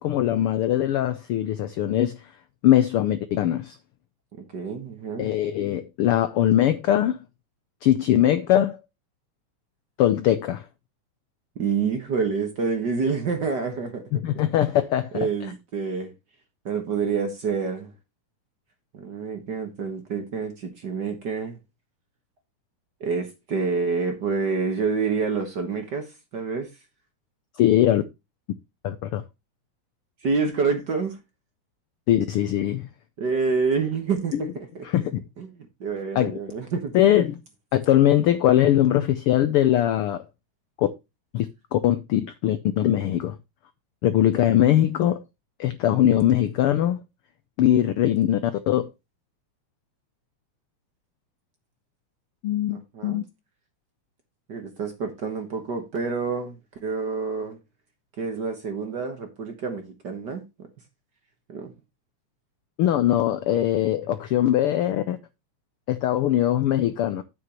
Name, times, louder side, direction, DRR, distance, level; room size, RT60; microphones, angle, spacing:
voice 1, 0.0-2.2 2.6-3.8 5.2-7.2 7.8-8.8 10.0-10.6 14.1-15.1 27.6-28.0 28.8-29.2 32.1-32.9 34.3-34.4 34.8-35.1 36.1-36.3 36.9-37.3 37.7-40.2 40.8-40.9 41.3-43.4 44.0-45.2 45.6-47.0 47.6-48.9 52.4-53.2 62.8-65.2 65.9-67.2, left 12 dB, 90° left, 1.2 m, -21 dB
voice 2, 4.4-5.3 11.5-14.0 15.1-16.1 16.6-17.9 18.9-21.6 23.0-26.1 26.3-26.7 30.2-31.2 33.2-34.8 35.4-35.5 35.8-37.0 52.7-53.2 54.5-56.6 56.8-57.6 58.2-60.4 61.5-61.7, right 5 dB, 45° right, 1.5 m, -27 dB
9.5 x 8.4 x 3.0 m
omnidirectional pair, 3.4 m